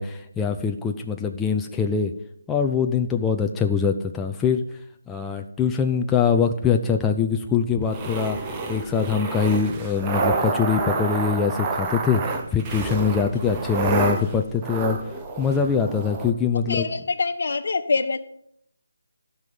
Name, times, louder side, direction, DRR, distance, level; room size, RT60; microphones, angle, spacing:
voice 1, 0.0-2.1 2.5-4.6 5.1-8.4 8.7-15.0 15.4-16.9, left 6 dB, 10° left, 3 dB, 0.5 m, -23 dB
sound 1, 7.8-16.3, right 4 dB, 20° right, 1.1 m, -28 dB
voice 2, 16.7-18.2, left 4 dB, 55° left, 8 dB, 1.2 m, -24 dB
12.0 x 5.6 x 7.6 m, 0.71 s
figure-of-eight pair, 155°, 0 cm